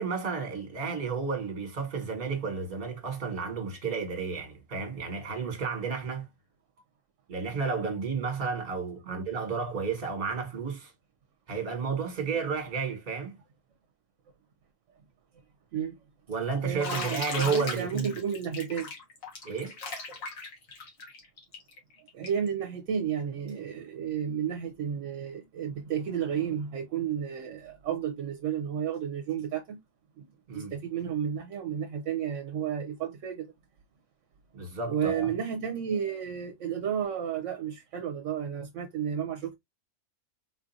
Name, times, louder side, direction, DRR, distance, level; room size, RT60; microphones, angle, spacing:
voice 1, 0.0-6.3 7.3-10.9 11.5-13.4 16.3-18.1 19.4-19.7 30.5-30.7 34.5-35.3, right 5 dB, 45° right, 1.3 m, -32 dB
voice 2, 16.6-18.9 22.1-29.8 30.2-30.3 30.5-33.5 34.9-39.5, right 8 dB, 75° right, 0.9 m, -32 dB
Bathtub (filling or washing), 16.8-22.5, left 4 dB, 80° left, 1.7 m, -38 dB
4.0 x 2.4 x 2.6 m
omnidirectional pair, 1.4 m